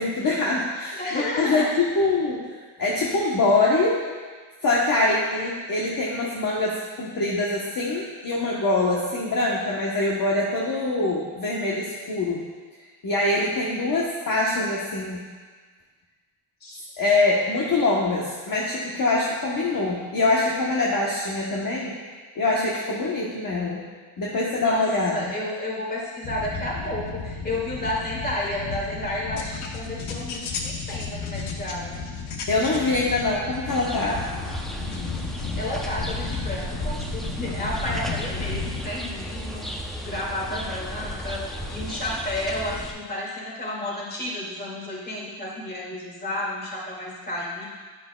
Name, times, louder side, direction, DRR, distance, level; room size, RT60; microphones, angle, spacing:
voice 1, 0.0-1.7 1.9-2.4 2.8-4.0 4.6-12.4 13.0-15.3 17.0-22.0 22.4-23.8 24.2-25.2 32.5-34.2, left 2 dB, 40° left, -5 dB, 1.2 m, -24 dB
voice 2, 1.0-1.7 16.6-16.9 24.6-24.9 25.1-32.0 35.6-39.7 40.0-41.4 41.7-47.6, left 1 dB, 20° left, -5 dB, 2.3 m, -31 dB
sound 1, 26.2-38.9, left 4 dB, 75° left, 1.1 m, -33 dB
sound 2, 33.7-42.9, equal, ahead, 0.7 m, -34 dB
10.5 x 10.0 x 2.3 m, 1.4 s
cardioid pair, 135°, 49 cm